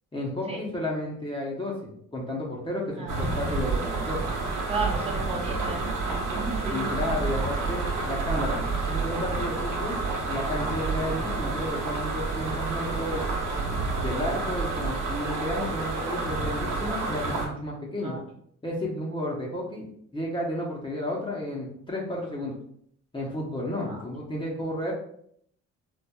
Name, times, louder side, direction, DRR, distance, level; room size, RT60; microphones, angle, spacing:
voice 1, 0.1-4.3 6.7-10.0 10.3-13.2 14.0-18.2 18.6-19.9 20.1-22.6 23.1-24.9, left 1 dB, 15° left, -4 dB, 0.8 m, -32 dB
voice 2, 3.0-3.4 4.7-6.9 18.0-18.2 23.8-24.0 24.8-24.9, right 3 dB, 20° right, -3 dB, 1.1 m, -34 dB
sound 1, 3.1-17.5, right 3 dB, 85° right, 1.0 m, -29 dB
4.3 x 2.5 x 2.3 m, 0.66 s
cardioid pair, 90°, 30 cm